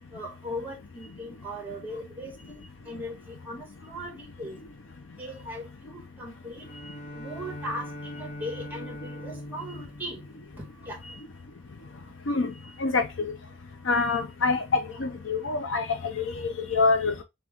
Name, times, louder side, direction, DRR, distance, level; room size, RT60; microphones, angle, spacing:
voice 1, 0.1-4.6 5.2-6.7 7.1-10.2 10.6-11.0, equal, 10° right, 1.9 m, -39 dB
Bowed string instrument, 6.6-11.2, left 1 dB, 45° left, 1.1 m, -42 dB
voice 2, 13.9-17.2, left 4 dB, 80° left, 0.7 m, -26 dB
6.1 x 2.5 x 3.5 m
head